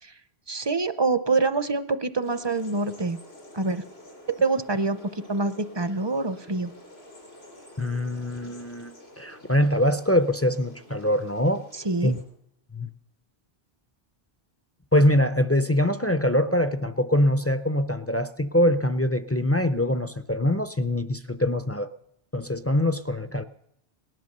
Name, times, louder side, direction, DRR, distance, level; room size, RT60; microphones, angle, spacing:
voice 1, 0.5-3.2 3.5-3.8 4.3-6.7 11.7-12.1, right 3 dB, 30° right, 12 dB, 0.5 m, -26 dB
sound 1, 2.2-12.2, left 1 dB, 85° left, 4.1 m, -49 dB
voice 2, 7.8-11.7 12.0-12.2 12.7-12.9 14.9-21.9 22.3-23.4, left 1 dB, 25° left, 10 dB, 0.3 m, -23 dB
18.5 x 11.0 x 6.7 m, 0.78 s
omnidirectional pair, 1.0 m